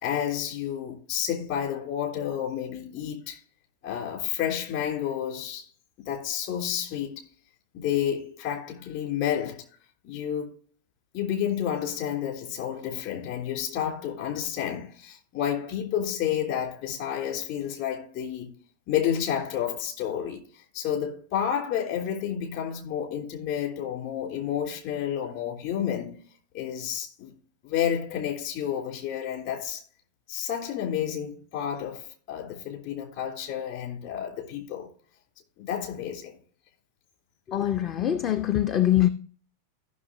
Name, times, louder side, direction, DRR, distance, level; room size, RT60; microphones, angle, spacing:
voice 1, 0.0-3.4 3.8-5.7 6.0-7.2 7.7-9.6 10.0-10.5 11.1-18.5 18.9-20.4 20.7-26.2 26.5-27.3 27.6-29.8 30.3-34.9 35.6-36.4, left 9 dB, 50° left, 3.3 m, -30 dB
voice 2, 37.5-39.1, left 12 dB, 30° left, 0.6 m, -23 dB
15.0 x 6.4 x 3.0 m
figure-of-eight pair, 90°, 0 cm